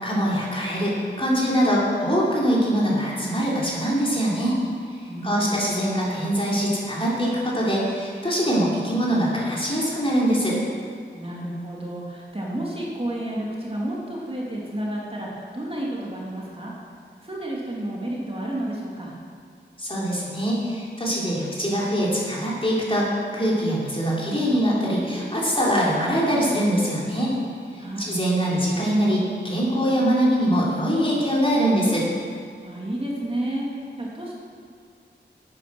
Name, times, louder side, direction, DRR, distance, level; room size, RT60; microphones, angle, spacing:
voice 1, 0.0-4.6 5.2-10.6 19.8-27.4 27.7-32.1, equal, 30° left, -6 dB, 3.7 m, -23 dB
voice 2, 5.1-5.6 11.1-16.7 17.2-19.1 27.8-28.1 32.6-34.3, right 1 dB, 30° right, -4 dB, 2.4 m, -31 dB
11.5 x 9.3 x 6.0 m, 2.3 s
wide cardioid pair, 55°, 19 cm